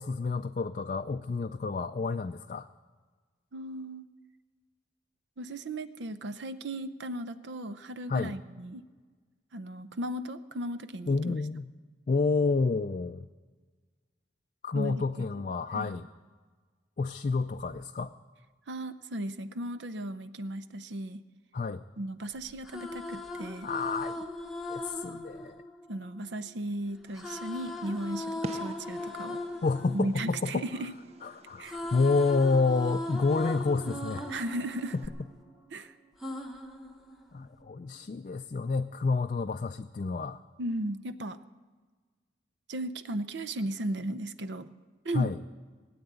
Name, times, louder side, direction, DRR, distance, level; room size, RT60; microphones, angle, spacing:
voice 1, 0.0-2.7 8.1-8.3 11.1-11.6 12.1-13.3 14.6-16.1 17.0-18.1 21.5-21.8 23.6-24.2 24.7-25.6 29.6-30.6 31.2-34.3 37.3-40.4 45.1-45.4, left 4 dB, 45° left, 6 dB, 0.3 m, -29 dB
voice 2, 3.5-4.0 5.4-8.8 9.5-11.4 14.7-15.0 15.7-15.9 18.7-21.2 22.0-23.7 25.9-29.4 29.9-30.9 31.6-31.8 34.3-35.0 35.7-35.9 40.6-41.4 42.7-44.7 45.0-45.4, right 1 dB, 75° right, 12 dB, 0.7 m, -36 dB
sound 1, 22.5-26.5 27.1-31.2 31.5-35.7 36.2-37.6, left 2 dB, ahead, 0.9 m, -39 dB
Fireworks, 27.1-35.1, right 2 dB, 35° right, 0.5 m, -48 dB
19.0 x 8.7 x 8.1 m, 1.5 s
head